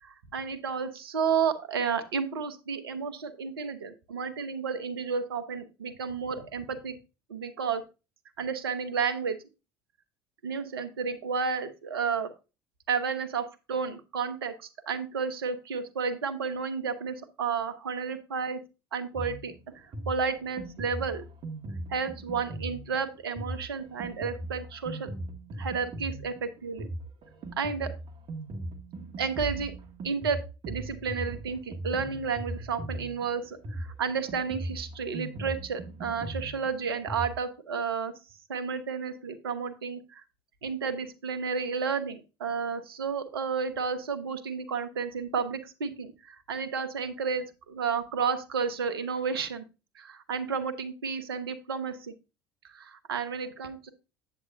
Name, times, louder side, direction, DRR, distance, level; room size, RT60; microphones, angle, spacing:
voice 1, 0.0-7.0 7.3-7.8 8.4-9.4 10.4-12.3 12.9-18.6 18.9-21.2 21.9-25.1 25.6-26.9 27.6-27.9 29.2-29.7 30.0-38.1 38.5-40.2 40.6-49.6 49.9-52.1 52.7-53.9, right 5 dB, 75° right, 10 dB, 0.9 m, -32 dB
Drum kit, 19.1-37.3, right 2 dB, 40° right, 1.3 m, -39 dB
8.1 x 7.9 x 2.6 m, 0.30 s
figure-of-eight pair, 65°, 12 cm